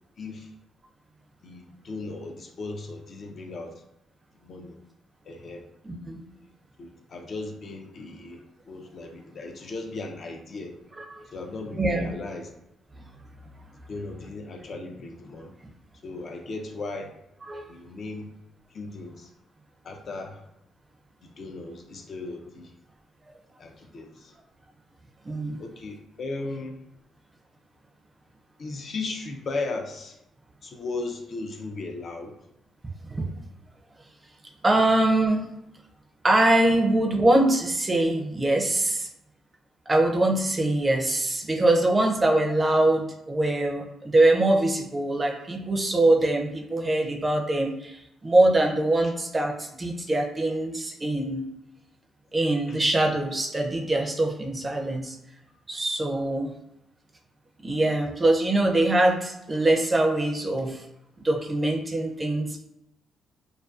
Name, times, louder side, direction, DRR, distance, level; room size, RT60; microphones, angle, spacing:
voice 1, 0.2-0.5 1.4-3.7 4.4-4.8 5.2-5.6 6.8-8.4 8.7-10.8 11.3-12.5 13.9-15.5 16.0-17.1 17.7-18.3 18.7-19.3 19.8-20.5 21.2-22.7 23.6-24.3 25.6-26.8 28.6-30.2 30.6-32.3 52.7-52.8, left 3 dB, 50° left, 4 dB, 0.4 m, -36 dB
voice 2, 5.8-6.2 11.0-11.2 11.7-12.1 17.5-17.6 25.2-25.6 33.1-33.3 34.6-35.4 36.2-39.1 39.9-51.5 52.3-55.2 55.7-56.5 57.6-60.8 61.2-62.6, right 2 dB, 25° right, 1 dB, 0.4 m, -23 dB
2.4 x 2.2 x 2.4 m, 0.83 s
cardioid pair, 90°, 0 cm